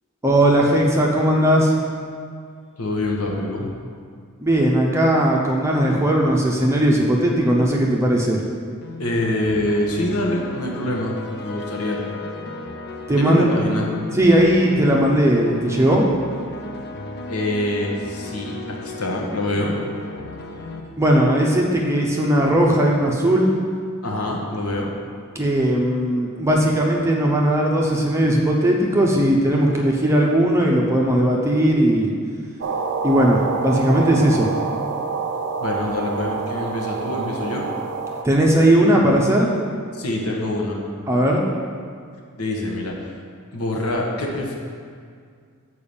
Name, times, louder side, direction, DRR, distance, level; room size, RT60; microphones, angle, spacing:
voice 1, 0.2-1.7 4.4-8.4 13.1-13.5 14.1-16.1 21.0-23.5 25.3-32.1 33.0-34.7 38.2-39.5 41.1-41.4, right 1 dB, 15° right, -2 dB, 0.7 m, -18 dB
voice 2, 2.8-3.7 9.0-12.0 13.2-13.9 17.3-19.7 24.0-24.9 35.6-37.6 39.9-40.8 42.4-43.2 43.5-44.6, left 1 dB, 75° left, -1 dB, 1.3 m, -25 dB
sound 1, 8.8-20.8, left 2 dB, 50° left, 0.6 m, -35 dB
sound 2, 32.6-38.2, right 4 dB, 55° right, 0.6 m, -27 dB
7.0 x 4.7 x 7.0 m, 2.1 s
head